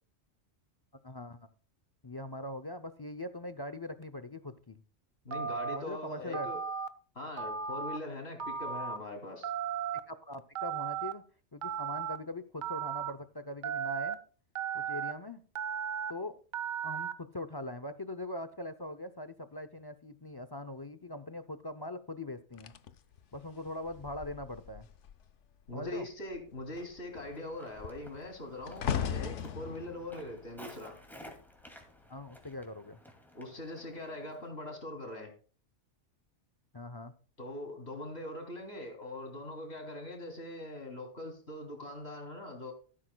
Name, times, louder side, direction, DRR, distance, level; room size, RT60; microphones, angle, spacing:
voice 1, 1.0-1.5 2.0-4.8 5.7-6.5 10.1-11.2 11.5-14.2 14.7-15.4 16.1-16.4 16.8-22.7 23.3-24.9 25.7-26.1 32.1-33.0 36.7-37.1, left 1 dB, 35° left, 0.4 m, -41 dB
voice 2, 5.3-6.6 7.2-9.5 25.7-31.0 33.3-35.3 37.4-42.7, left 1 dB, 60° left, 3.4 m, -42 dB
Telephone, 5.3-5.8 6.3-6.9 7.4-8.0 8.4-9.0 9.4-10.0 10.5-11.1 11.6-12.2 12.6-13.1 13.6-14.1 14.5-15.1 15.5-16.1 16.5-17.1, right 7 dB, 50° right, 0.9 m, -35 dB
sound 1, 22.6-25.3 25.6-26.0 26.3-31.6 32.4-32.6, left 8 dB, 80° left, 1.0 m, -39 dB
Walk footsteps, 27.1-34.5, equal, ahead, 2.2 m, -55 dB
14.0 x 12.5 x 2.2 m
omnidirectional pair, 1.2 m